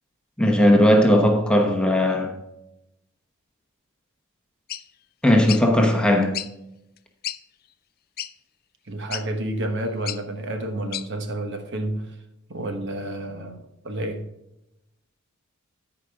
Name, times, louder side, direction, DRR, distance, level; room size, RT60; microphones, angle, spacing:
voice 1, 0.4-2.3 5.2-6.4, left 1 dB, 5° left, 1.0 m, -18 dB
sound 1, 4.7-4.8 5.5-5.6 6.3-6.5 7.0-7.1 7.2-7.4 8.2-8.3 9.1-9.3 10.1-10.2 10.9-11.1, left 12 dB, 45° left, 0.4 m, -31 dB
voice 2, 8.9-12.1 12.5-13.6 13.8-14.2, right 1 dB, 50° right, 1.1 m, -30 dB
13.5 x 5.1 x 3.6 m
head